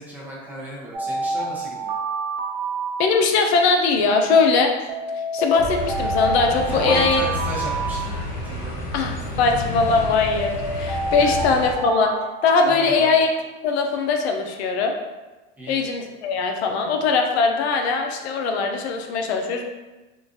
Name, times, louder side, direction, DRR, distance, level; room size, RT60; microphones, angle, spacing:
voice 1, 0.0-1.9 6.7-8.0 8.4-8.8 11.2-11.4 12.6-13.2 15.6-15.8, right 1 dB, 5° right, -7 dB, 0.7 m, -34 dB
Alarm, 0.9-3.5 4.9-8.5 9.9-13.1, right 3 dB, 80° right, 0.8 m, -28 dB
voice 2, 3.0-4.7 5.3-7.2 8.9-12.1 12.4-13.3 13.6-15.0 15.7-19.7, left 4 dB, 75° left, 3 dB, 0.5 m, -20 dB
sound 1, 5.6-11.7, left 1 dB, 30° left, 0.9 m, -30 dB
3.7 x 2.3 x 2.6 m, 1.1 s
supercardioid pair, 135°, 32 cm